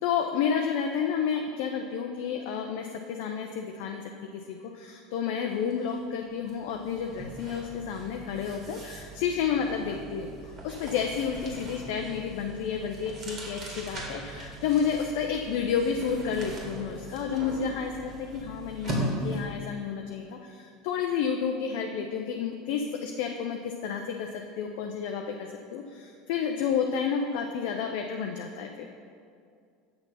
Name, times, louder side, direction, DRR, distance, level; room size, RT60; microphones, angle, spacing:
voice 1, 0.0-4.0 4.3-10.3 10.6-28.9, left 7 dB, 65° left, 3 dB, 0.5 m, -30 dB
sound 1, 5.7-5.9 6.2-19.6, right 1 dB, 45° right, 2.1 m, -39 dB
7.7 x 6.0 x 5.6 m, 2.3 s
figure-of-eight pair, 75°, 0 cm